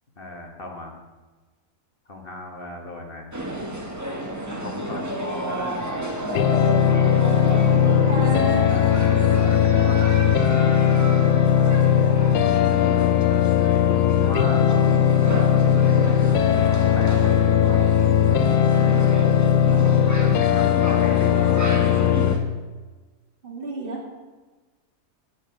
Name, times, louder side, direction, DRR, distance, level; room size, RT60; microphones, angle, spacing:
voice 1, 0.2-0.9 2.0-3.3 4.6-5.2 9.2-10.4 11.0-11.5 14.2-15.1 16.0-16.7 16.9-17.3 18.4-19.3 20.1-21.3, left 1 dB, 35° left, 3 dB, 1.5 m, -37 dB
sound 1, 3.3-22.4, right 1 dB, 10° right, 1.2 m, -31 dB
sound 2, 6.4-22.3, left 9 dB, 85° left, 1.2 m, -18 dB
voice 2, 7.5-8.7 23.4-24.1, right 2 dB, 35° right, -1 dB, 2.6 m, -31 dB
9.1 x 8.8 x 7.6 m, 1.3 s
omnidirectional pair, 1.6 m